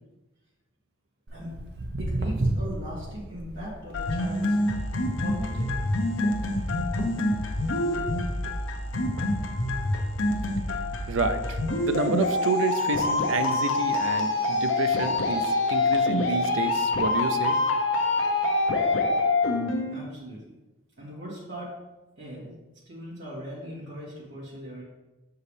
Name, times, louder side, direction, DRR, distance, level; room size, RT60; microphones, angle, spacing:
Walk footsteps, 1.3-7.9 8.3-8.6 9.2-9.3 9.9-10.0 10.4-10.5 10.7-10.8 11.4-11.6 12.2-13.8 14.4-14.5 15.2-15.3 15.7-16.0 16.7-16.8, right 1 dB, 55° right, 0.7 m, -34 dB
voice 1, 2.0-4.6 5.2-5.7 19.9-20.5 21.0-21.8 22.2-22.5 22.9-24.8, equal, 70° right, -7 dB, 2.3 m, -39 dB
sound 1, 3.9-19.9, left 2 dB, 75° left, 0.8 m, -26 dB
voice 2, 11.1-17.6, right 3 dB, 85° right, 9 dB, 0.5 m, -29 dB
7.0 x 4.6 x 3.3 m, 1.1 s
head